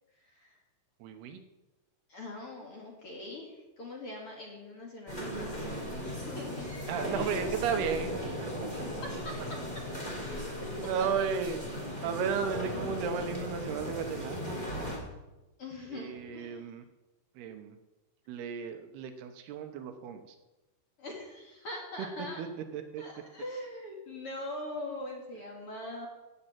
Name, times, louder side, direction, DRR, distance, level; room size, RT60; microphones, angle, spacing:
voice 1, 0.2-0.5 2.1-5.8 6.3-6.7 7.2-7.3 8.7-8.8 11.0-11.1 12.1-12.3 15.6-16.6 21.0-22.4 23.0-26.1, left 1 dB, 40° left, -1 dB, 2.6 m, -42 dB
voice 2, 1.0-1.4 6.9-8.5 8.8-8.9 10.8-11.6 12.0-14.4 15.9-16.8 17.4-17.8 18.3-20.4 22.0-22.1 22.4-22.5 22.7-23.0, right 7 dB, 75° right, 7 dB, 2.9 m, -34 dB
sound 1, 5.1-15.0, equal, 10° left, 3.5 m, -37 dB
14.0 x 6.8 x 9.0 m, 1.0 s
omnidirectional pair, 4.7 m